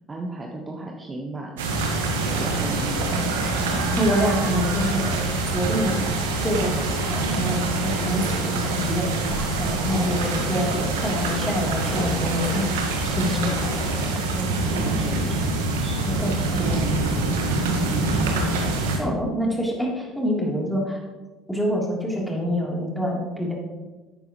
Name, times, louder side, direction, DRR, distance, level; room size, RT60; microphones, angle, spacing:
voice 1, 0.1-1.9 2.2-4.2 13.4-13.6 14.2-16.4, right 2 dB, 25° right, 0 dB, 1.2 m, -35 dB
sound 1, 1.6-19.0, right 2 dB, 75° right, 1.3 m, -25 dB
voice 2, 4.0-5.2 5.5-6.0 6.3-12.6 13.0-13.5 16.2-17.0 19.0-21.0 21.5-23.5, equal, 5° left, -3 dB, 3.2 m, -26 dB
sound 2, 6.4-14.3, left 1 dB, 40° left, 2.5 m, -40 dB
11.5 x 8.9 x 3.1 m, 1.2 s
figure-of-eight pair, 60°, 0 cm